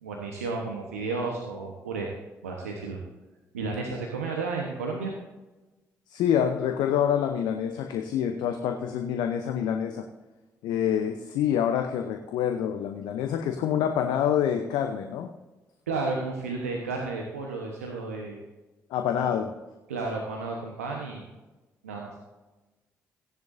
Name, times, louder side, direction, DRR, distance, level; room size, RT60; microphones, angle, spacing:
voice 1, 0.0-2.1 2.4-3.0 3.5-5.1 15.9-18.4 19.1-19.3 19.9-21.3 21.8-22.1, right 3 dB, 90° right, 0 dB, 1.1 m, -32 dB
voice 2, 6.1-10.1 10.6-15.3 18.9-19.5, left 9 dB, 70° left, 6 dB, 0.8 m, -26 dB
16.0 x 10.5 x 2.7 m, 1.1 s
hypercardioid pair, 45°, 8 cm